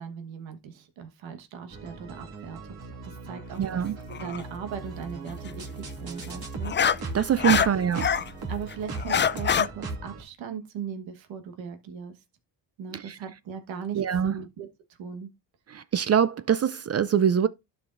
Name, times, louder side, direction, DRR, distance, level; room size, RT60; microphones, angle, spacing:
voice 1, 0.0-2.6 3.0-3.8 4.2-6.7 7.6-7.8 8.5-12.1 12.8-14.7 15.0-15.3, right 7 dB, 85° right, 1.4 m, -38 dB
sound 1, 1.7-10.2, right 3 dB, 55° right, 2.4 m, -38 dB
voice 2, 3.6-4.0 7.1-8.0 12.9-13.2 13.9-14.4 15.7-17.5, right 8 dB, 35° right, 0.4 m, -24 dB
sound 2, 4.1-4.4 6.2-8.3 8.7-9.7, left 7 dB, 25° left, 0.4 m, -24 dB
12.0 x 5.0 x 2.5 m
cardioid pair, 70°, 45 cm